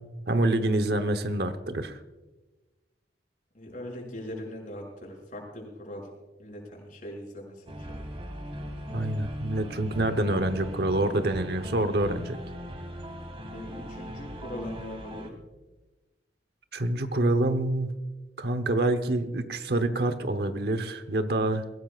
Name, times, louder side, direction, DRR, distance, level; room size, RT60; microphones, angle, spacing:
voice 1, 0.3-2.0 8.9-12.4 16.7-17.9 18.4-21.6, right 1 dB, 60° right, 9 dB, 1.0 m, -26 dB
voice 2, 3.5-6.1 6.4-7.9 13.5-15.3, left 1 dB, 50° left, -1 dB, 6.1 m, -40 dB
sound 1, 7.7-15.3, equal, 35° right, 2.0 m, -39 dB
23.0 x 16.5 x 2.5 m, 1.1 s
head